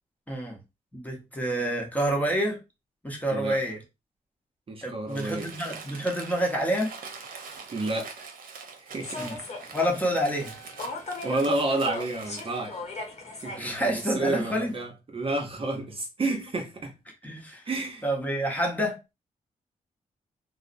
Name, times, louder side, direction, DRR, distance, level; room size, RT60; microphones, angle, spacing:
voice 1, 0.3-0.6 0.9-2.6 3.0-3.8 4.8-6.9 9.2-9.4 9.7-10.6 13.5-14.7 17.2-17.6 18.0-19.0, right 1 dB, 10° left, 0.9 m, -28 dB
voice 2, 4.7-5.5 7.7-8.1 8.8-9.3 11.0-12.8 13.4-16.9 17.7-18.1, right 2 dB, 40° right, 0.7 m, -30 dB
Crumpling crinkling, 5.1-12.7, right 5 dB, 85° right, 0.6 m, -44 dB
Human voice / Subway metro underground, 9.0-14.7, left 2 dB, 50° left, 0.9 m, -39 dB
2.7 x 2.0 x 2.5 m
cardioid pair, 95°, 14 cm